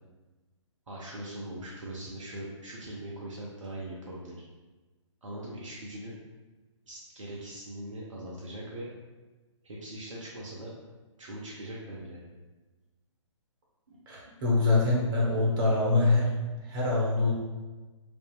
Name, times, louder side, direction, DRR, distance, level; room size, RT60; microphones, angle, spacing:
voice 1, 0.9-4.3 5.2-6.1 6.9-8.9 9.6-10.7 11.2-12.3 13.9-14.4, right 1 dB, 75° right, -5 dB, 0.6 m, -41 dB
voice 2, 14.1-17.3, left 2 dB, 40° right, -4 dB, 1.0 m, -25 dB
2.8 x 2.5 x 2.4 m, 1.2 s
figure-of-eight pair, 125°, 16 cm